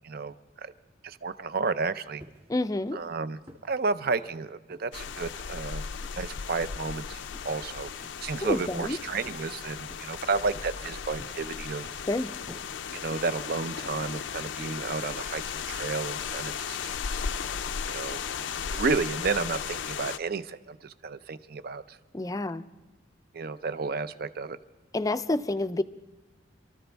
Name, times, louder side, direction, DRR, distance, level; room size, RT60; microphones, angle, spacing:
voice 1, 0.0-0.7 1.0-2.2 2.9-3.4 3.7-5.8 6.2-11.9 12.9-16.9 17.9-18.2 18.7-22.0 23.3-24.6, right 4 dB, 55° right, 13 dB, 0.6 m, -32 dB
sound 1, 2.2-2.6 2.8-3.1 3.5-3.7 4.1-4.3 4.7-4.9 5.4-5.6 6.0-6.2 6.7-7.0 7.3-7.5 8.0-8.2 8.6-8.9 9.3-9.5 9.9-10.2 10.5-10.9 11.2-11.5 11.8-12.1 12.5-12.7 13.1-13.4 13.7-13.9, equal, 30° right, 2.0 m, -51 dB
voice 2, 2.5-3.0 8.4-9.0 12.1-12.3 22.1-22.6 24.9-25.8, left 2 dB, 20° left, 11 dB, 0.4 m, -28 dB
sound 2, 4.9-20.2, left 7 dB, 75° left, 0.5 m, -36 dB
28.0 x 13.5 x 3.5 m, 1.1 s
head